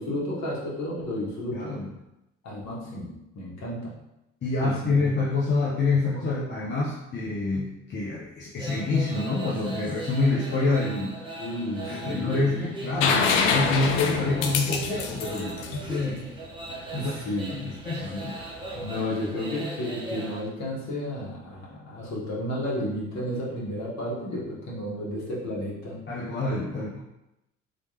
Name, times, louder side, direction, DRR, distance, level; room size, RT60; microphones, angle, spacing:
voice 1, 0.0-1.8 2.4-3.9 4.6-5.0 11.3-12.5 15.3-15.9 16.9-17.7 18.7-26.0, left 1 dB, 45° left, -5 dB, 1.4 m, -32 dB
voice 2, 1.5-1.9 4.4-11.2 11.9-16.2 16.9-17.2 17.5-18.4 26.1-27.0, left 3 dB, 30° left, -5 dB, 0.8 m, -27 dB
sound 1, 8.6-20.4, right 2 dB, 15° right, 0.9 m, -39 dB
sound 2, 13.0-16.7 18.6-18.7, left 5 dB, 70° left, 0.5 m, -26 dB
3.2 x 3.0 x 2.8 m, 0.88 s
figure-of-eight pair, 50°, 38 cm